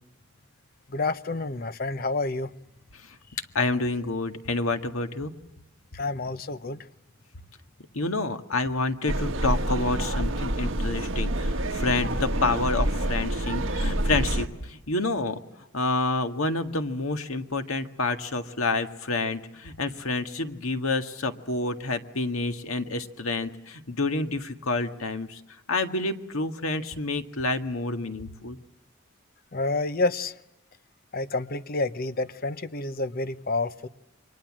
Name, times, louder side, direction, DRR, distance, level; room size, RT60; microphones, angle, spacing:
voice 1, 0.9-2.5 5.9-6.9 29.5-30.3 31.1-33.9, left 3 dB, 45° left, 13 dB, 0.9 m, -29 dB
voice 2, 3.6-5.3 7.9-15.4 15.7-25.4 25.7-28.6, left 2 dB, 85° left, 7 dB, 1.9 m, -28 dB
sound 1, 9.1-14.5, right 1 dB, 65° right, 1.8 m, -27 dB
29.5 x 24.5 x 7.5 m, 0.90 s
head